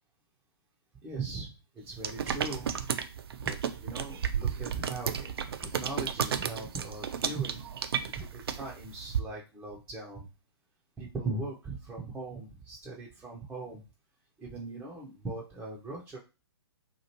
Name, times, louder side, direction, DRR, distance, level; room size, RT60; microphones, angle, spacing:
voice 1, 1.0-2.9 3.4-5.3 5.6-7.6 8.0-10.3 11.0-13.8 14.4-16.2, right 3 dB, 5° right, -5 dB, 0.5 m, -39 dB
sound 1, 2.0-9.2, right 8 dB, 60° right, 0.4 m, -33 dB
2.9 x 2.4 x 2.9 m, 0.30 s
figure-of-eight pair, 125°, 14 cm